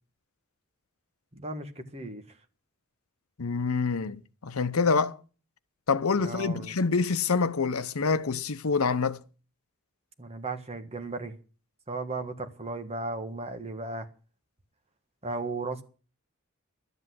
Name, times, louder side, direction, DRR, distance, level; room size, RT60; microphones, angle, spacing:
voice 1, 1.3-2.2 6.2-6.7 10.2-11.3 11.9-14.1 15.2-15.8, right 3 dB, 30° right, 1.4 m, -35 dB
voice 2, 3.4-5.2 5.9-9.2, left 4 dB, 85° left, 0.8 m, -26 dB
12.0 x 8.2 x 7.7 m
head